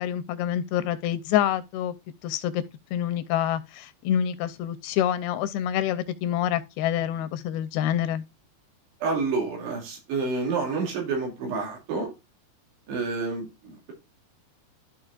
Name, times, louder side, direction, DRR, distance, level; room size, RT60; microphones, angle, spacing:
voice 1, 0.0-1.9 2.2-2.6 2.9-8.2, left 10 dB, 80° left, 2.4 m, -27 dB
voice 2, 9.0-12.1 12.9-13.9, right 4 dB, 85° right, 4.6 m, -29 dB
13.0 x 4.9 x 2.4 m
omnidirectional pair, 4.7 m